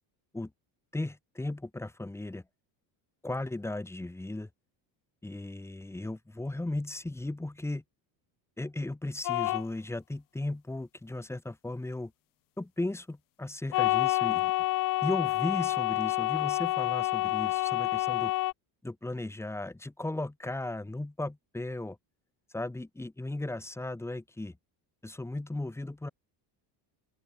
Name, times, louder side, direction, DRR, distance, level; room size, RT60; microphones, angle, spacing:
voice 1, 0.9-2.4 3.2-4.5 5.2-7.8 8.6-12.1 12.6-14.5 15.0-18.3 18.8-22.0 22.5-24.6 25.0-26.1, left 2 dB, 5° left, 6.1 m, -36 dB
sound 1, 9.2-9.6 13.7-18.5, left 18 dB, 50° left, 1.2 m, -28 dB
open air
cardioid pair, 180°, 44 cm